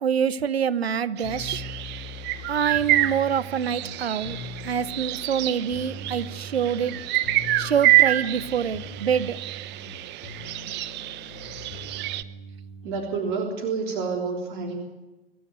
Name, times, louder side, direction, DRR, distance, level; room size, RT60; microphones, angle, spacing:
voice 1, 0.0-1.6 2.5-4.4 4.6-7.0 7.6-9.5, right 8 dB, 85° right, 1.0 m, -26 dB
sound 1, 1.2-13.1, left 2 dB, 45° left, 6.7 m, -41 dB
sound 2, 1.2-12.2, right 16 dB, 35° right, 1.0 m, -27 dB
voice 2, 12.8-14.8, right 4 dB, 55° right, 3.6 m, -29 dB
25.5 x 14.0 x 9.2 m
hypercardioid pair, 105°, 30 cm